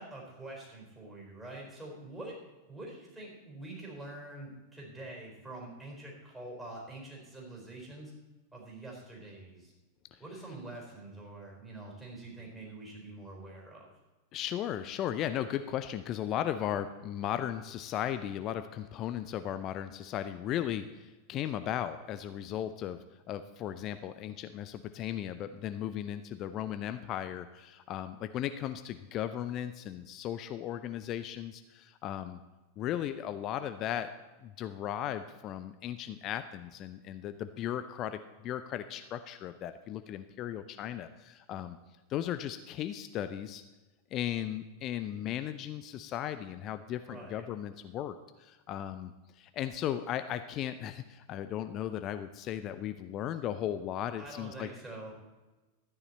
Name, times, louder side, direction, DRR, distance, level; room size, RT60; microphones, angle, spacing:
voice 1, 0.0-2.4 2.7-8.1 8.5-9.7 10.2-13.9 47.0-47.4 54.2-55.1, right 2 dB, 10° right, -2 dB, 4.3 m, -45 dB
voice 2, 14.3-23.0 23.3-32.4 32.8-34.1 34.4-41.8 42.1-43.6 44.1-54.7, left 11 dB, 35° left, 11 dB, 0.5 m, -36 dB
13.0 x 9.7 x 4.2 m, 1.2 s
figure-of-eight pair, 90°, 0 cm